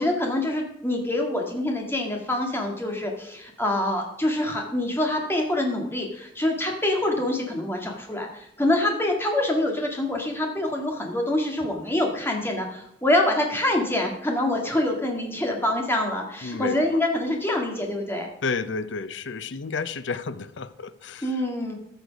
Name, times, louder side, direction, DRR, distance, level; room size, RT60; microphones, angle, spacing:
voice 1, 0.0-18.3 21.2-21.7, left 1 dB, 10° left, 1 dB, 1.9 m, -25 dB
voice 2, 16.4-16.8 18.4-21.4, left 4 dB, 70° left, 14 dB, 0.6 m, -31 dB
14.0 x 6.5 x 5.2 m, 0.76 s
head